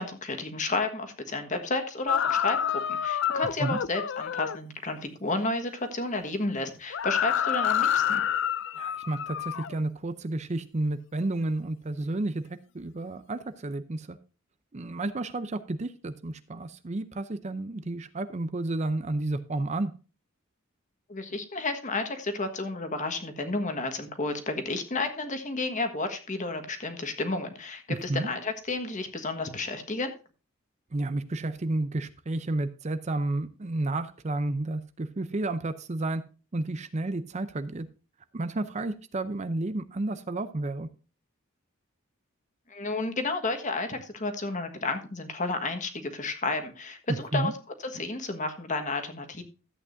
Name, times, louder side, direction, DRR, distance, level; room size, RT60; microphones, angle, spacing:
voice 1, 0.0-2.6 2.9-8.2 21.1-30.1 42.7-47.5 47.8-49.4, left 3 dB, 35° left, 7 dB, 1.4 m, -31 dB
sound 1, 2.1-4.6 6.9-9.8, left 9 dB, 55° left, 0.4 m, -28 dB
voice 2, 8.8-12.4 12.7-14.2 14.7-19.9 27.9-28.3 30.9-36.2 36.5-37.9 38.3-40.9 47.1-47.5, right 2 dB, 30° right, 12 dB, 0.5 m, -31 dB
13.5 x 8.6 x 2.6 m, 0.34 s
head